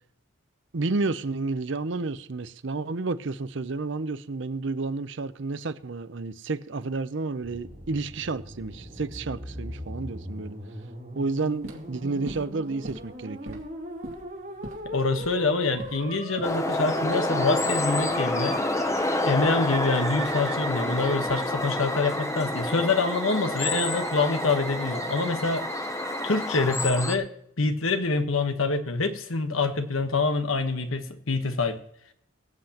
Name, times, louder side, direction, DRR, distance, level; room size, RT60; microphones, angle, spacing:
voice 1, 0.7-10.6 11.2-13.6, right 3 dB, 65° right, 0.6 m, -31 dB
Musical instrument, 7.4-26.5, right 3 dB, 40° right, 5.6 m, -38 dB
sound 1, 11.5-21.7, right 1 dB, 80° right, 2.4 m, -45 dB
voice 2, 14.9-18.6 19.2-25.7 26.2-27.3 27.6-31.8, left 3 dB, 85° left, 1.2 m, -26 dB
sound 2, 16.4-27.2, left 2 dB, 15° left, 0.6 m, -29 dB
23.0 x 7.8 x 2.9 m
head